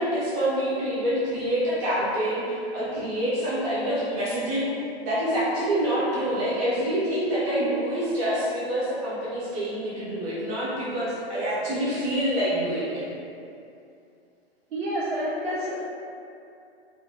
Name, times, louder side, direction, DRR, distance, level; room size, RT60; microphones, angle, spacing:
voice 1, 0.0-4.7 5.0-13.0, equal, 35° right, -9 dB, 0.6 m, -26 dB
voice 2, 14.7-15.9, equal, 70° right, -9 dB, 1.3 m, -29 dB
2.6 x 2.1 x 3.4 m, 2.5 s
hypercardioid pair, 135°, 32 cm